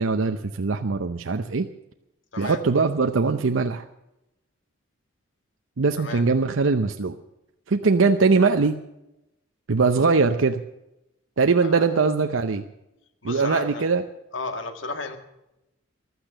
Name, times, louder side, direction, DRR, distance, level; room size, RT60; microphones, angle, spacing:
voice 1, 0.0-1.7 2.4-3.8 5.8-7.2 7.7-8.8 9.7-10.6 11.4-12.6 13.2-14.0, right 4 dB, 80° right, 7 dB, 0.7 m, -21 dB
voice 2, 11.6-12.0 13.2-13.8 14.3-15.2, left 3 dB, 80° left, 7 dB, 1.8 m, -33 dB
15.0 x 12.0 x 6.7 m, 0.89 s
head